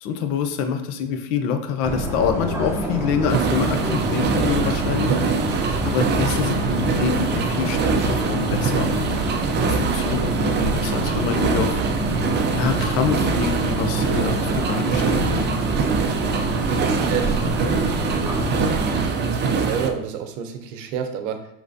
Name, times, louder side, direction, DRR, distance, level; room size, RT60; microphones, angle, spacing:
voice 1, 0.0-5.1 5.8-9.1 9.7-11.8 12.5-15.5, left 6 dB, 65° left, 7 dB, 0.7 m, -26 dB
sound 1, 1.8-19.1, right 1 dB, 5° right, 0.8 m, -27 dB
sound 2, 3.3-19.9, right 5 dB, 30° right, 0.4 m, -23 dB
voice 2, 16.2-17.3 17.8-17.9 18.1-18.5 19.0-21.5, right 8 dB, 70° right, 7 dB, 0.7 m, -30 dB
4.8 x 3.2 x 2.6 m, 0.74 s
supercardioid pair, 100°, 40 cm